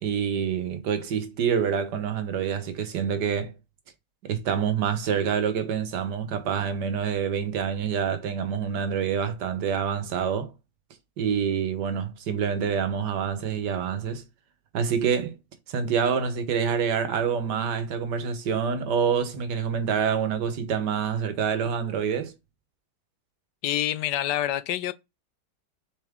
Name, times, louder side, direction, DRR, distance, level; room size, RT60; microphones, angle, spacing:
voice 1, 0.0-3.5 4.2-10.5 11.2-14.2 14.7-15.4 15.7-22.3, right 7 dB, 80° right, 1.6 m, -27 dB
voice 2, 23.6-24.9, left 12 dB, 85° left, 1.2 m, -27 dB
7.2 x 4.0 x 3.6 m
omnidirectional pair, 1.8 m